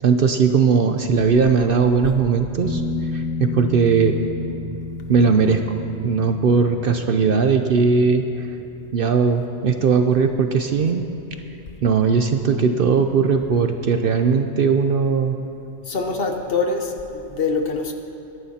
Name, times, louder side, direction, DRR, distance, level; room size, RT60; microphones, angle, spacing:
voice 1, 0.0-4.2 5.1-5.8 6.0-8.5 8.9-11.1 11.8-15.4, right 5 dB, 60° right, 6 dB, 0.7 m, -19 dB
sound 1, 2.6-10.2 13.3-13.4, left 3 dB, 15° right, 0.9 m, -32 dB
voice 2, 15.9-17.9, left 4 dB, 55° left, 4 dB, 1.1 m, -24 dB
24.0 x 11.0 x 2.8 m, 2.8 s
omnidirectional pair, 1.3 m